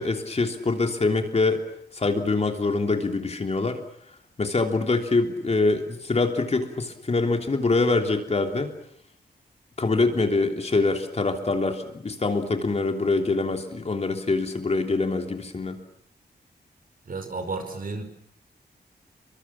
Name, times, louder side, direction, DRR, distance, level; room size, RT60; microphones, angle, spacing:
voice 1, 0.0-1.6 1.9-3.8 4.4-8.7 9.8-15.8, left 3 dB, 40° left, 4 dB, 3.3 m, -24 dB
voice 2, 17.1-18.0, right 3 dB, 55° right, 8 dB, 5.3 m, -32 dB
29.0 x 24.0 x 7.3 m, 0.67 s
wide cardioid pair, 130°, 17 cm